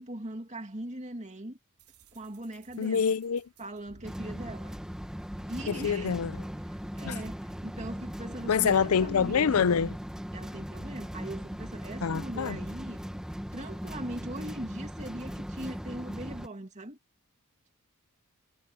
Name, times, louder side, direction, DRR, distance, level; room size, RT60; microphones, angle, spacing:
voice 1, 0.0-1.6 2.1-3.1 3.6-4.7 5.5-6.2 7.0-9.7 10.3-13.0 13.5-17.0, right 1 dB, 35° right, 2.4 m, -40 dB
sound 1, 1.8-5.6, right 3 dB, 85° right, 3.7 m, -60 dB
voice 2, 2.8-3.4 5.7-6.4 7.1-7.2 8.5-10.0 12.0-12.6, left 6 dB, 70° left, 0.5 m, -26 dB
sound 2, 4.0-16.5, equal, 5° right, 1.3 m, -39 dB
head